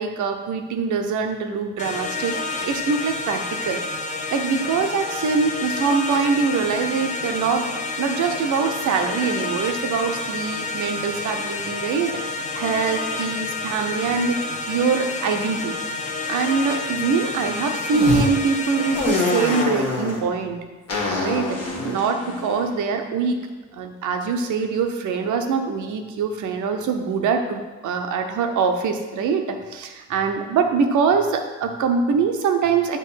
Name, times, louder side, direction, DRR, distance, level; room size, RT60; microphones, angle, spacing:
voice 1, 0.0-3.8 4.3-7.7 8.0-14.4 14.7-15.7 16.3-20.6 21.2-23.4 23.7-33.0, right 5 dB, 75° right, 5 dB, 0.8 m, -23 dB
sound 1, 1.8-19.6, left 3 dB, 25° left, 0.7 m, -29 dB
sound 2, 17.9-18.3 18.9-20.2 20.9-23.3, left 3 dB, 55° left, 1.5 m, -25 dB
7.5 x 3.0 x 5.7 m, 1.3 s
cardioid pair, 90°, 30 cm